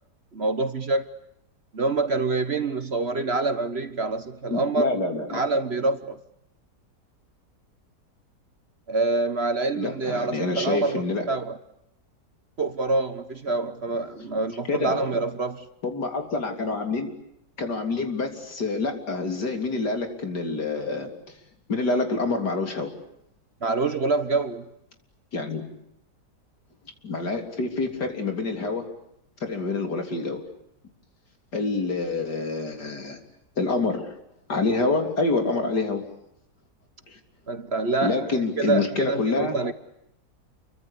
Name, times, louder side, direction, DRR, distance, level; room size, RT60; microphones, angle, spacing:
voice 1, 0.3-1.1 1.7-5.0 5.3-6.2 8.9-11.6 12.6-15.7 23.6-24.7 37.5-39.7, right 3 dB, 40° right, 1.4 m, -26 dB
voice 2, 4.5-5.4 9.7-11.2 14.7-15.0 15.8-17.1 17.6-21.1 21.7-22.9 25.3-25.6 27.0-28.8 29.4-30.4 31.5-33.2 33.6-34.1 34.5-36.0 37.1-37.2 38.0-39.6, left 3 dB, 75° left, 4.1 m, -27 dB
29.5 x 24.0 x 8.5 m
omnidirectional pair, 1.8 m